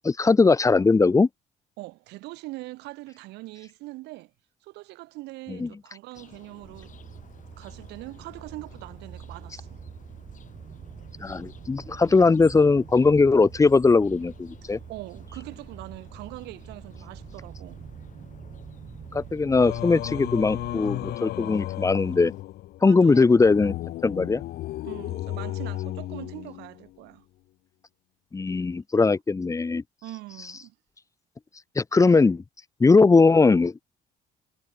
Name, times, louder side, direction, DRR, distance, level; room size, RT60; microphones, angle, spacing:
voice 1, 0.0-1.3 5.5-5.7 11.2-14.8 19.1-22.3 22.8-23.7 24.0-24.4 28.3-29.8 31.8-32.4 32.8-33.8, left 4 dB, 20° left, 0.9 m, -20 dB
voice 2, 1.8-4.3 4.6-6.9 7.6-9.8 14.9-17.8 18.2-18.4 22.8-23.5 24.8-27.2 30.0-30.7, right 20 dB, 90° right, 3.3 m, -42 dB
sound 1, 6.1-22.4, left 9 dB, 50° left, 7.2 m, -52 dB
sound 2, 6.6-21.2, right 8 dB, 45° right, 3.8 m, -44 dB
Singing, 19.6-26.9, left 16 dB, 70° left, 0.8 m, -34 dB
cardioid pair, 110°, 17 cm